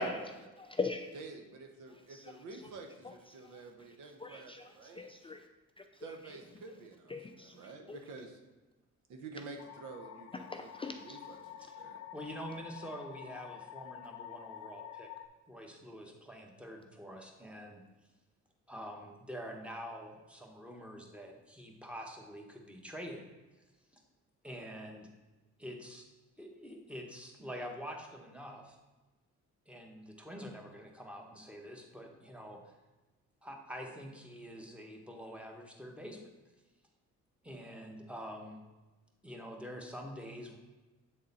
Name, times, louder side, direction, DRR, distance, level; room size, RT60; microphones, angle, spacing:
voice 1, 0.0-1.1 2.1-2.3 3.0-3.1 3.4-3.6 4.2-5.5 5.8-6.4 7.1-8.0 10.5-11.2, left 3 dB, 20° left, 5 dB, 0.3 m, -41 dB
voice 2, 1.1-5.3 6.0-8.4 9.1-12.0, right 3 dB, 80° right, 3 dB, 1.0 m, -49 dB
sound 1, 9.6-15.3, left 10 dB, 60° left, 0.6 m, -49 dB
voice 3, 12.1-15.1 15.5-17.8 18.7-23.2 23.9-24.0 24.4-25.1 25.6-26.1 26.4-28.8 29.7-32.6 33.4-36.3 37.4-38.6 39.2-40.6, equal, 5° right, 1 dB, 1.1 m, -46 dB
7.9 x 3.8 x 4.1 m, 1.1 s
cardioid pair, 90°, 30 cm